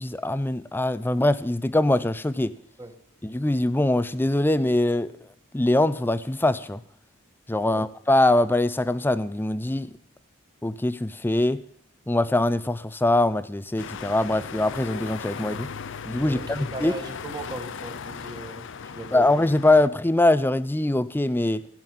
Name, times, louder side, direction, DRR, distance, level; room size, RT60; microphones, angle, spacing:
voice 1, 0.0-2.5 3.2-5.1 5.5-6.8 7.5-9.9 10.6-11.6 12.1-15.7 16.1-16.9 19.1-21.6, left 1 dB, 10° left, 0.5 m, -23 dB
sound 1, 13.8-19.9, left 6 dB, 60° left, 0.6 m, -37 dB
voice 2, 16.2-19.3, right 2 dB, 20° right, 1.7 m, -38 dB
16.0 x 6.1 x 9.2 m
head